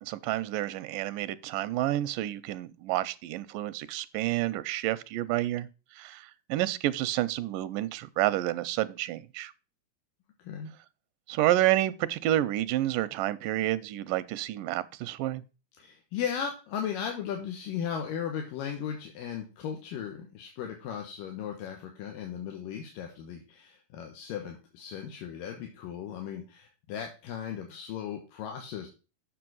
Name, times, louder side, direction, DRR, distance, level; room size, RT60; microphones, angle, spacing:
voice 1, 0.0-5.7 6.0-9.5 11.3-15.4, right 14 dB, 85° right, 2.2 m, -29 dB
voice 2, 15.8-28.9, left 8 dB, 85° left, 3.0 m, -36 dB
7.8 x 6.4 x 6.1 m
omnidirectional pair, 3.8 m